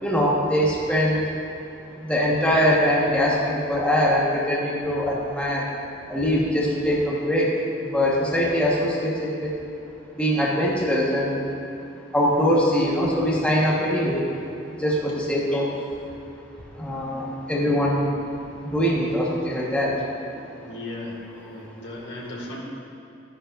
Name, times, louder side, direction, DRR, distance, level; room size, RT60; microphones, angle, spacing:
voice 1, 0.0-1.2 2.0-5.6 6.1-7.5 7.9-9.1 10.2-11.4 12.1-14.2 14.8-15.7 16.8-18.0 18.7-19.9, equal, 5° left, -6 dB, 1.3 m, -22 dB
voice 2, 20.5-22.6, left 1 dB, 65° left, -2 dB, 2.0 m, -36 dB
13.0 x 10.0 x 2.6 m, 2.9 s
head